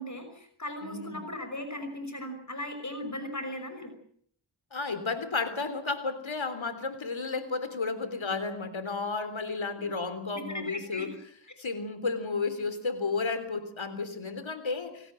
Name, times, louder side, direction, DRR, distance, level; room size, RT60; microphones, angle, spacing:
voice 1, 0.0-4.0 9.8-9.9 10.3-11.1, left 1 dB, 35° left, 7 dB, 5.8 m, -38 dB
voice 2, 0.8-1.2 4.7-11.1 11.6-15.1, left 4 dB, 70° left, 12 dB, 3.7 m, -32 dB
28.5 x 18.0 x 7.8 m, 0.64 s
cardioid pair, 50°, 47 cm